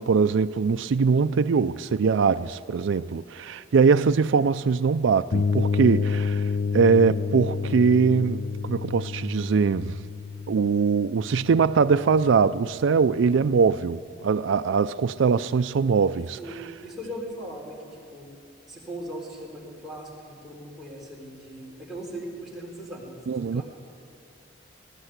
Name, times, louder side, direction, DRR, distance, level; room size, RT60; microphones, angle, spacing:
voice 1, 0.0-10.0 10.5-16.6 23.3-23.6, right 5 dB, 85° right, 0.4 m, -22 dB
sound 1, 5.3-13.0, left 5 dB, 55° left, 0.5 m, -29 dB
voice 2, 16.3-18.3 18.7-23.6, right 1 dB, ahead, 4.3 m, -39 dB
19.0 x 18.5 x 8.1 m
head